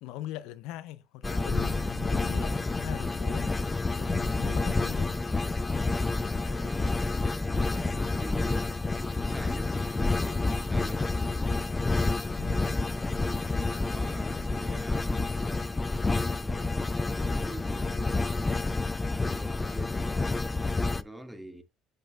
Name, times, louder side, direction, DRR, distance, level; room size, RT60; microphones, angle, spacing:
voice 1, 0.0-5.1 12.4-12.9, left 14 dB, 75° left, 0.5 m, -41 dB
sound 1, 1.2-21.0, left 3 dB, 20° left, 0.5 m, -29 dB
voice 2, 6.4-8.8 9.2-11.2 13.3-15.3 16.2-16.8 17.3-18.4 19.1-20.4 20.8-21.6, right 1 dB, 10° right, 1.6 m, -45 dB
12.0 x 5.4 x 2.3 m
supercardioid pair, 75°, 0 cm